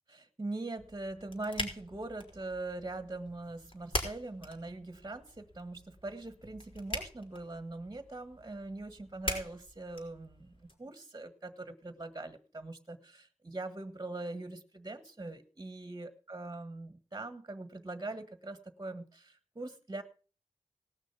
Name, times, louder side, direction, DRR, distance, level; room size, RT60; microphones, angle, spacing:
voice 1, 0.1-20.0, right 2 dB, 30° right, 11 dB, 1.4 m, -42 dB
sound 1, 0.8-10.7, left 1 dB, 50° left, 4.2 m, -43 dB
18.5 x 6.4 x 5.7 m, 0.38 s
cardioid pair, 55°, 12 cm